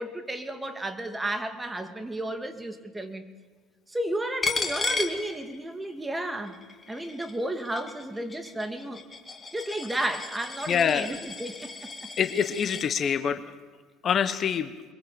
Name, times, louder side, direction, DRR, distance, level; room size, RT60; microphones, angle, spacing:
voice 1, 0.0-3.3 3.9-6.6 6.9-9.0 9.5-11.7, right 1 dB, 15° right, 8 dB, 2.5 m, -32 dB
Coin (dropping), 4.4-5.9 6.3-12.9, left 4 dB, 25° left, 2.8 m, -35 dB
voice 2, 10.7-11.1 12.2-13.4 14.0-14.7, left 7 dB, 45° left, 11 dB, 1.2 m, -25 dB
23.0 x 22.5 x 7.1 m, 1.5 s
hypercardioid pair, 70°, 0 cm